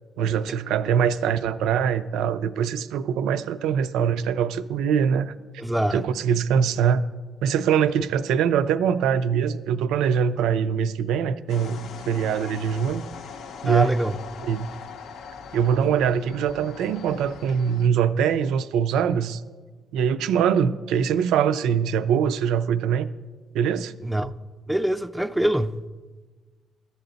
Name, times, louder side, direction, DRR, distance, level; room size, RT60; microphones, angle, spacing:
voice 1, 0.2-5.3 5.9-7.1 7.4-13.0 13.6-13.9 14.4-14.7 15.5-19.4 19.9-23.1 23.5-23.9, right 7 dB, 90° right, 0.3 m, -23 dB
voice 2, 5.6-6.0 13.7-14.2 24.0-24.3 24.7-25.8, right 1 dB, 5° right, 0.3 m, -24 dB
sound 1, 11.5-17.9, left 6 dB, 75° left, 0.5 m, -41 dB
11.5 x 6.9 x 3.9 m
cardioid pair, 90°, 0 cm